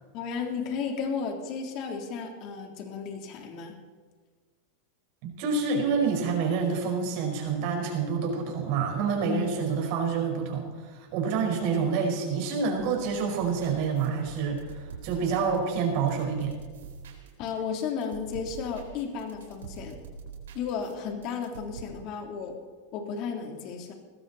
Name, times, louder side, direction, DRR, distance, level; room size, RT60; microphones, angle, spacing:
voice 1, 0.1-3.7 17.4-20.0 20.5-22.5 22.9-23.9, left 6 dB, 50° left, 3 dB, 3.4 m, -34 dB
voice 2, 5.2-16.5, right 5 dB, 55° right, 2 dB, 5.1 m, -28 dB
sound 1, 12.8-17.5 17.8-21.8, right 6 dB, 90° right, 3.8 m, -45 dB
20.5 x 15.0 x 4.3 m, 1.5 s
hypercardioid pair, 120°, 0 cm